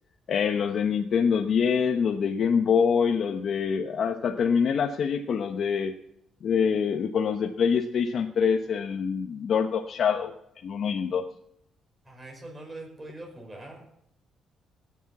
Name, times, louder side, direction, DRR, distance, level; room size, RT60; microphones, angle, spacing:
voice 1, 0.3-5.9 6.4-10.3 10.6-11.2, left 6 dB, 60° left, 4 dB, 1.0 m, -25 dB
voice 2, 12.0-13.9, right 2 dB, 20° right, 0 dB, 5.4 m, -43 dB
18.0 x 7.2 x 7.2 m, 0.76 s
cardioid pair, 90°, 0 cm